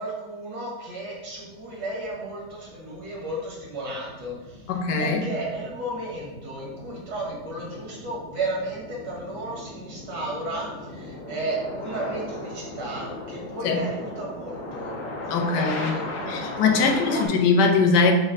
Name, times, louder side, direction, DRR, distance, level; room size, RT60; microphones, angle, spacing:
voice 1, 0.0-4.7 5.0-14.9 15.3-16.5 16.8-17.2, right 1 dB, 90° right, -4 dB, 2.0 m, -34 dB
sound 1, 1.2-17.3, left 2 dB, 70° left, 1.1 m, -38 dB
voice 2, 4.7-5.3 13.6-13.8 15.3-15.9 16.3-18.1, left 4 dB, 90° left, 3 dB, 1.3 m, -21 dB
6.1 x 2.1 x 3.8 m, 1.1 s
omnidirectional pair, 1.8 m